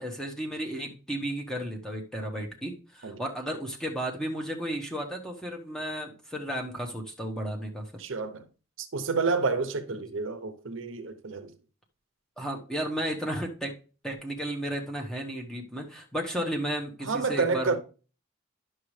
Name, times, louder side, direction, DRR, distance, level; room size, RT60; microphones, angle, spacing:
voice 1, 0.0-7.9 12.4-13.7 14.0-17.8, right 1 dB, 5° left, 1.1 m, -33 dB
voice 2, 8.0-8.4 8.8-11.5 17.0-17.8, right 4 dB, 70° right, 0.8 m, -29 dB
10.5 x 6.3 x 3.2 m
head